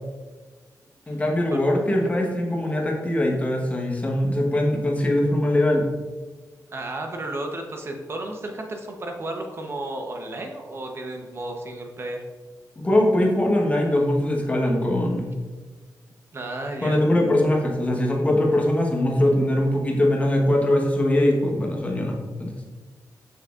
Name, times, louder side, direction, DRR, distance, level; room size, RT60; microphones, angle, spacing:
voice 1, 1.1-5.9 12.8-15.3 16.8-22.5, left 1 dB, 20° left, 0 dB, 1.2 m, -22 dB
voice 2, 6.7-12.2 16.3-17.0, right 2 dB, 40° right, 3 dB, 0.9 m, -33 dB
6.4 x 6.4 x 2.5 m, 1.3 s
cardioid pair, 100°, 7 cm